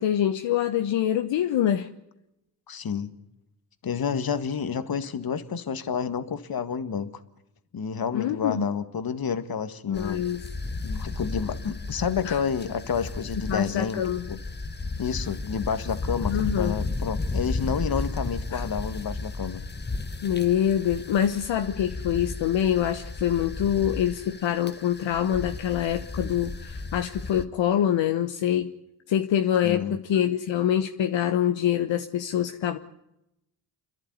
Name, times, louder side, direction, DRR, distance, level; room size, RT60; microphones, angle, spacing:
voice 1, 0.0-1.9 8.1-8.7 9.9-10.4 12.2-12.4 13.5-14.2 16.3-16.7 18.5-18.6 20.2-28.7 29.1-32.8, left 10 dB, 65° left, 7 dB, 1.2 m, -25 dB
voice 2, 2.7-3.1 3.8-7.2 7.7-10.2 10.8-14.0 14.3-14.4 15.0-19.6 29.6-30.0, left 7 dB, 45° left, 11 dB, 1.8 m, -29 dB
sound 1, 9.9-27.5, left 3 dB, 20° left, 1.4 m, -34 dB
29.5 x 11.0 x 9.7 m, 0.87 s
hypercardioid pair, 50°, 48 cm